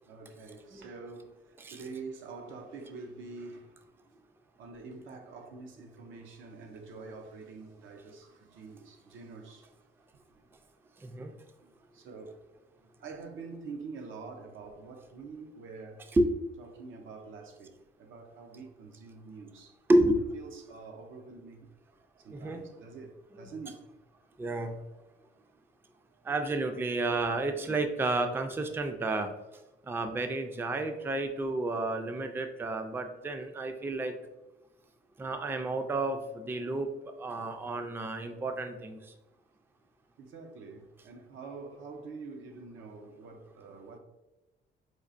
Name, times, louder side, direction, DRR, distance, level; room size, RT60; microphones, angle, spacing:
voice 1, 0.0-3.8 4.6-9.7 11.6-12.4 13.0-16.1 16.6-19.8 20.3-21.7 22.2-23.9 26.1-26.3 35.3-35.4 40.2-44.0, right 4 dB, 80° right, 0.6 m, -46 dB
voice 2, 19.9-20.2 22.3-22.6 24.4-24.7 26.3-29.3 29.9-34.1 35.2-36.9 37.2-39.0, right 2 dB, 10° right, 0.3 m, -30 dB
4.4 x 2.4 x 2.5 m
cardioid pair, 90°, 20 cm